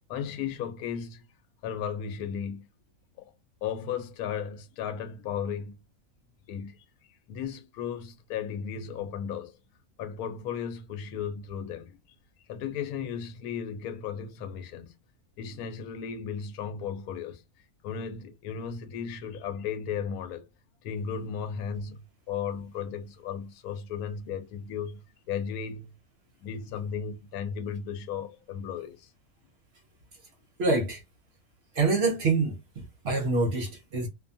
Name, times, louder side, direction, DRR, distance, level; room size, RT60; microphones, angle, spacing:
voice 1, 0.1-1.3 1.6-2.7 3.2-3.3 3.6-5.7 6.5-9.5 10.0-12.0 12.5-14.9 15.4-17.4 17.8-20.5 20.8-25.9 26.4-29.1, left 7 dB, 90° left, 1.1 m, -35 dB
voice 2, 30.6-31.0 31.7-34.1, right 3 dB, 60° right, 0.7 m, -26 dB
2.7 x 2.2 x 2.5 m
omnidirectional pair, 1.5 m